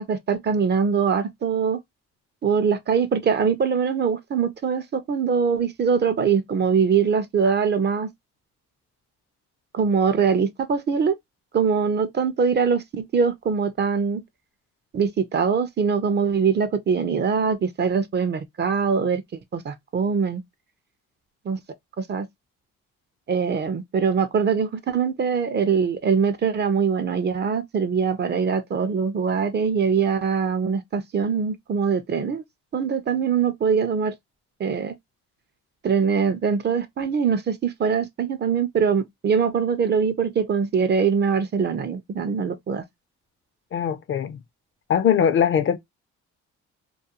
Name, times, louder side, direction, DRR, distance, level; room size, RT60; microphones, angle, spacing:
voice 1, 0.0-1.8 2.4-8.1 9.7-11.2 11.5-14.2 14.9-19.2 19.5-20.4 21.5-21.6 22.0-22.3 23.3-32.4 32.7-34.1 34.6-34.9 35.8-42.8, right 6 dB, 35° right, 0.4 m, -22 dB
voice 2, 43.7-44.4 44.9-45.8, left 8 dB, 45° left, 0.4 m, -21 dB
2.4 x 2.2 x 2.7 m
cardioid pair, 90°, 30 cm